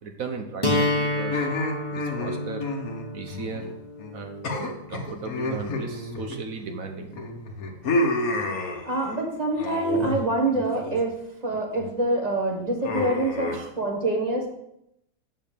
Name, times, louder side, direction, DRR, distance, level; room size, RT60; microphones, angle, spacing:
voice 1, 0.0-1.5 1.9-2.6 3.1-3.7 4.1-7.1 13.5-13.7, right 4 dB, 60° right, 5 dB, 1.3 m, -36 dB
sound 1, 0.6-6.6, left 1 dB, 15° left, 1.5 m, -30 dB
sound 2, 1.3-3.7 4.0-4.2 4.4-6.8 7.1-9.2 9.6-10.2 10.5-11.0 11.4-11.9 12.8-13.6, left 2 dB, 65° left, 1.5 m, -30 dB
voice 2, 8.8-11.1 11.4-14.5, right 2 dB, 25° right, 1 dB, 1.7 m, -26 dB
7.6 x 5.6 x 6.8 m, 0.81 s
omnidirectional pair, 1.7 m